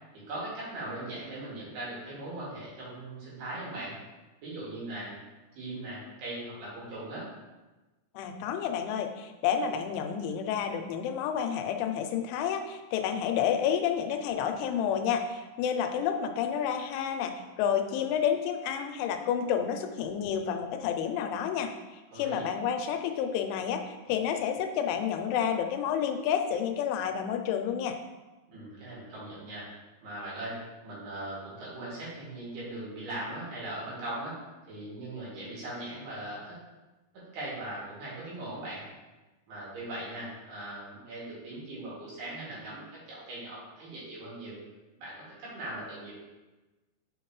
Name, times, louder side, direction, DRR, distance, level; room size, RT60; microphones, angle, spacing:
voice 1, 0.3-4.0 4.4-5.2 5.6-7.3 22.1-22.5 28.5-29.7 30.0-34.4 34.7-36.5 37.3-38.8 39.5-44.6 45.0-46.1, right 1 dB, 60° right, -8 dB, 4.1 m, -39 dB
voice 2, 8.2-21.7 22.2-28.0, left 8 dB, 85° left, 6 dB, 3.0 m, -30 dB
7.3 x 5.8 x 3.1 m, 1.1 s
omnidirectional pair, 5.4 m